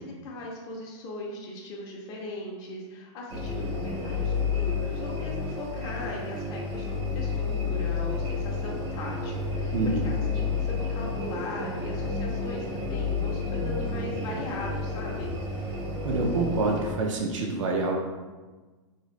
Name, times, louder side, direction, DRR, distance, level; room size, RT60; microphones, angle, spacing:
voice 1, 0.0-15.3, left 1 dB, 25° left, -2 dB, 0.4 m, -38 dB
sound 1, 3.3-16.9, left 4 dB, 55° right, 0.8 m, -31 dB
voice 2, 9.7-10.1 16.0-18.0, right 3 dB, 85° right, 0 dB, 0.5 m, -26 dB
2.6 x 2.4 x 3.0 m, 1.3 s
supercardioid pair, 150°, 16 cm